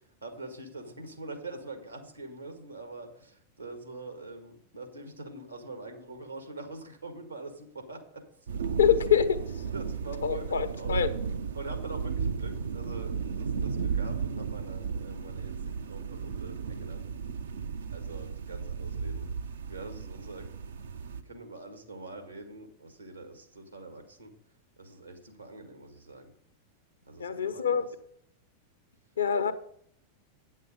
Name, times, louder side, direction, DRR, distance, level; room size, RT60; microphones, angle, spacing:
voice 1, 0.2-8.2 8.5-8.6 9.7-11.0 11.5-17.0 17.9-19.3 19.7-20.5 21.0-24.3 24.8-26.3 27.1-27.9, right 2 dB, 85° right, 1.7 m, -44 dB
sound 1, 8.5-21.2, right 6 dB, 65° right, 0.6 m, -34 dB
voice 2, 8.8-9.4 10.2-11.1 27.2-27.8 29.2-29.5, left 8 dB, 70° left, 0.9 m, -25 dB
9.1 x 7.4 x 5.2 m
figure-of-eight pair, 90°, 0 cm